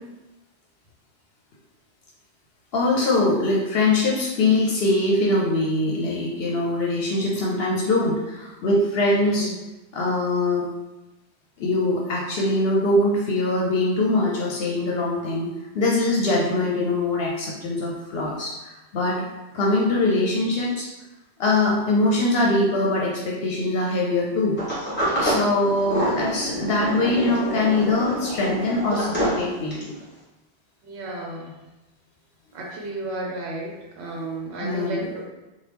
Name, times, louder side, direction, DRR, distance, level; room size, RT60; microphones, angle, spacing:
voice 1, 2.7-9.5 9.9-10.7 11.6-15.5 15.7-19.2 19.5-20.9 21.4-24.6 25.2-29.9 34.6-35.0, left 2 dB, 70° left, -3 dB, 0.8 m, -22 dB
voice 2, 9.2-9.6 30.8-31.6 32.5-35.2, right 2 dB, 80° right, -2 dB, 0.9 m, -33 dB
Sliding door, 24.6-30.0, right 1 dB, 10° left, 1.1 m, -27 dB
2.9 x 2.3 x 3.3 m, 1.0 s
omnidirectional pair, 1.1 m